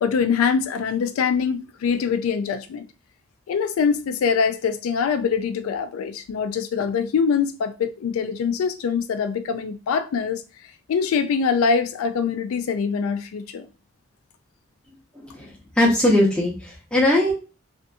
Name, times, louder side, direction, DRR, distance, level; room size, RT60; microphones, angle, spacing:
voice 1, 0.0-2.9 3.5-10.4 10.9-13.7, left 6 dB, 90° left, 0.3 m, -23 dB
voice 2, 15.1-17.3, left 1 dB, 5° left, 0.7 m, -20 dB
2.6 x 2.5 x 2.3 m
head